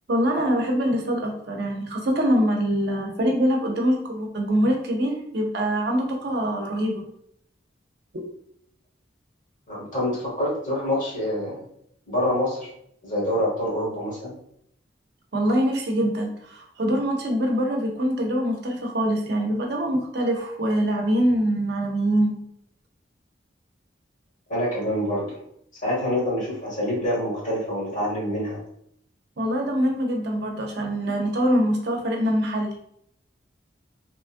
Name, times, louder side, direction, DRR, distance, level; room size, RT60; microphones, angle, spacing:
voice 1, 0.1-7.0 15.3-22.4 29.4-32.8, equal, 60° right, 1 dB, 0.6 m, -24 dB
voice 2, 9.7-11.6 12.1-12.7 13.0-14.3 24.5-25.3 25.8-28.6, left 1 dB, 40° left, -5 dB, 1.3 m, -26 dB
3.0 x 2.3 x 2.5 m, 0.70 s
head